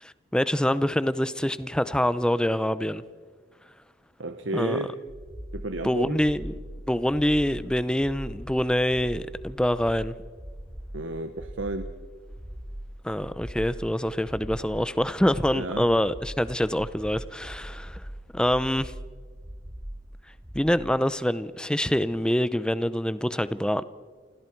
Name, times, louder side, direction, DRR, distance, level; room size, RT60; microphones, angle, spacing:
voice 1, 0.0-3.0 4.5-4.8 5.8-6.5 6.9-10.1 13.0-18.0 18.3-18.9 20.5-23.8, equal, 5° left, 15 dB, 0.6 m, -25 dB
voice 2, 4.2-4.9 5.5-6.2 10.9-11.9 15.5-15.9, right 2 dB, 85° right, 7 dB, 1.2 m, -32 dB
sound 1, 5.1-20.9, equal, 20° right, 2.7 m, -41 dB
29.5 x 25.5 x 4.6 m, 1.5 s
head